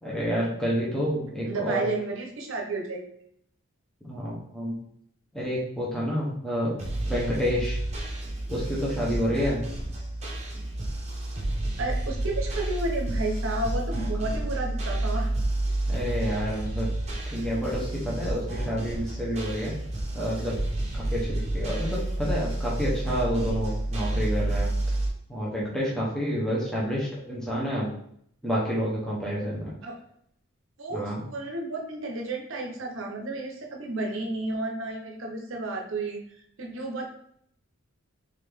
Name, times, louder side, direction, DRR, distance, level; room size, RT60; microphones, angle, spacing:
voice 1, 0.0-1.9 4.0-4.8 5.3-6.8 7.0-7.8 8.5-9.6 15.9-16.9 17.3-19.7 20.1-20.6 20.9-24.7 25.3-27.9 28.4-29.7 30.9-31.2, equal, 5° left, -6 dB, 0.8 m, -29 dB
voice 2, 1.5-3.0 11.8-15.3 17.4-17.5 29.8-30.0 30.8-37.0, right 2 dB, 65° right, 1 dB, 0.7 m, -32 dB
sound 1, 6.8-25.1, right 1 dB, 30° right, 0.9 m, -30 dB
3.8 x 3.4 x 3.4 m, 0.69 s
head